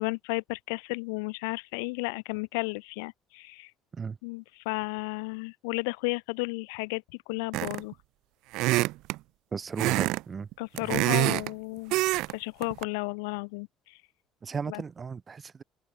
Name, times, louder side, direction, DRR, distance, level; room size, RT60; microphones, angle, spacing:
voice 1, 0.0-3.7 4.2-7.0 7.3-7.9 10.6-12.0 12.3-14.0 14.7-14.8, left 31 dB, 80° left, 1.0 m, -33 dB
sound 1, 7.5-7.9 8.5-9.2 9.8-10.2 10.5-11.5 11.9-12.3 12.6-12.8, right 19 dB, 70° right, 0.6 m, -25 dB
voice 2, 9.5-10.5 14.4-15.6, right 5 dB, 35° right, 1.1 m, -35 dB
open air
hypercardioid pair, 65°, 0 cm